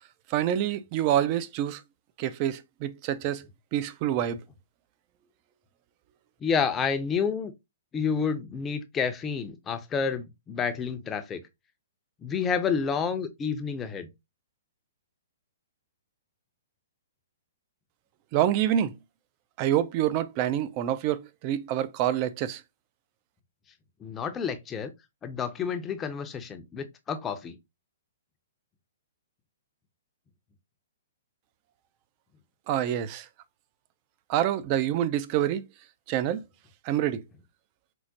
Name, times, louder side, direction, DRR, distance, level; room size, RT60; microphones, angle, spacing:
voice 1, 0.3-1.8 2.2-3.5 3.7-4.4 18.3-19.0 19.6-22.6 32.7-33.3 34.3-35.6 36.1-36.4 36.8-37.2, right 11 dB, 40° right, 0.4 m, -27 dB
voice 2, 6.4-7.5 7.9-11.4 12.2-14.1 24.0-24.9 25.2-27.6, left 6 dB, 20° left, 0.5 m, -29 dB
4.5 x 2.1 x 2.7 m
hypercardioid pair, 130°, 0 cm